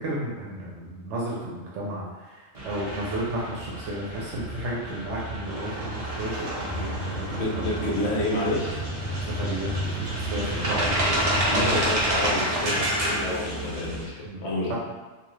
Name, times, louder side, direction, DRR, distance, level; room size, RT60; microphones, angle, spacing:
voice 1, 0.0-7.9 9.2-11.8 14.2-14.7, right 1 dB, 70° right, -5 dB, 0.9 m, -33 dB
sound 1, 2.6-14.0, right 1 dB, 40° right, 0.5 m, -29 dB
sound 2, 6.7-13.1, equal, 40° left, 0.4 m, -34 dB
voice 2, 7.3-8.8 11.4-14.7, left 1 dB, 65° left, -5 dB, 0.9 m, -29 dB
2.5 x 2.3 x 3.1 m, 1.2 s
omnidirectional pair, 1.3 m